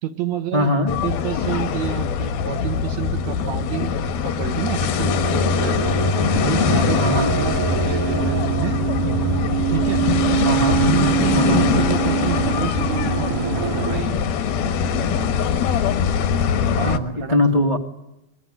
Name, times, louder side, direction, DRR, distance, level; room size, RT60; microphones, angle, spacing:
voice 1, 0.0-3.9 4.2-5.8 6.3-8.8 9.7-10.0 10.8-14.3 14.6-15.5 16.8-17.8, right 10 dB, 60° right, 7 dB, 2.1 m, -29 dB
voice 2, 0.5-0.9 7.0-7.3 10.4-10.8 11.3-11.7 16.8-17.8, left 1 dB, 55° left, 2 dB, 0.4 m, -21 dB
sound 1, 0.9-17.0, left 6 dB, 85° left, 3.3 m, -22 dB
sound 2, 4.6-14.0, right 12 dB, 80° right, 1.3 m, -25 dB
25.5 x 22.0 x 9.7 m, 0.91 s
omnidirectional pair, 4.2 m